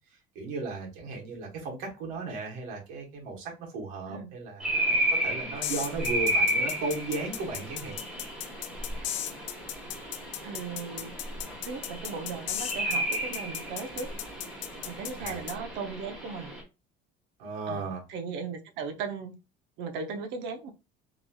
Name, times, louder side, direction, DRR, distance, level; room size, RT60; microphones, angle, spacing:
voice 1, 0.3-8.3 15.2-15.4 17.4-18.0, right 3 dB, 85° right, 1.2 m, -36 dB
sound 1, 4.6-16.6, right 1 dB, ahead, 1.2 m, -33 dB
sound 2, 5.6-15.5, left 12 dB, 70° left, 0.4 m, -36 dB
voice 2, 10.4-11.1 11.6-14.1 14.9-16.5 17.7-19.3 19.8-20.7, right 5 dB, 65° right, 0.6 m, -37 dB
2.9 x 2.8 x 2.2 m
cardioid pair, 135°, 20 cm